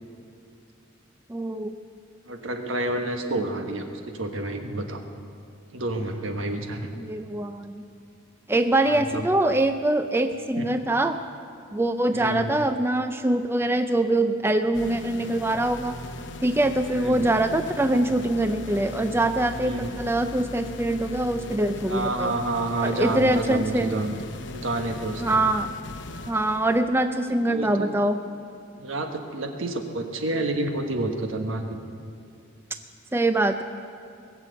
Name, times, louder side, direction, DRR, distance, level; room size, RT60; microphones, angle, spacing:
voice 1, 1.3-1.8 7.0-7.8 8.5-11.2 11.7-16.0 16.4-22.3 22.8-23.9 25.2-25.7 26.3-28.2 33.1-33.6, right 1 dB, 10° right, 8 dB, 0.4 m, -24 dB
voice 2, 2.3-5.0 5.7-6.9 8.8-9.3 10.5-10.7 12.1-12.5 16.9-17.2 19.6-19.9 21.9-24.1 24.5-25.4 27.2-27.9 28.8-31.8, right 2 dB, 75° right, 4 dB, 1.4 m, -29 dB
sound 1, 14.7-26.8, left 1 dB, 60° left, 0.8 m, -38 dB
20.0 x 7.4 x 8.1 m, 2.5 s
head